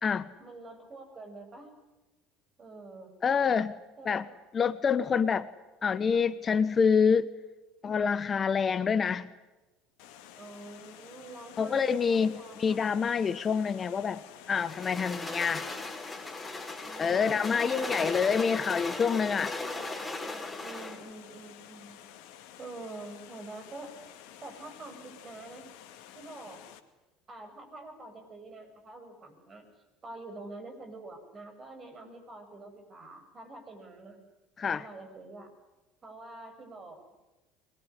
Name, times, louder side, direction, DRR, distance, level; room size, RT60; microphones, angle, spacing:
voice 1, 0.4-1.7 2.6-3.2 4.0-4.3 5.0-5.3 10.4-12.8 16.8-18.9 19.5-22.1 22.6-23.9 24.4-25.7 26.1-26.6 27.3-29.6 30.0-34.2 34.7-35.5 36.0-37.1, right 2 dB, 35° right, 5 dB, 7.7 m, -46 dB
voice 2, 3.2-3.7 4.0-4.2 4.5-5.5 5.8-7.3 7.8-9.3 11.6-14.2 14.5-15.7 17.0-19.5 34.6-34.8, left 6 dB, 35° left, 14 dB, 1.1 m, -27 dB
Water, 10.0-26.8, left 10 dB, 70° left, 2.2 m, -51 dB
sound 1, 14.5-21.0, left 3 dB, 15° left, 4.8 m, -37 dB
24.0 x 21.0 x 9.9 m, 1.1 s
hypercardioid pair, 70°, 0 cm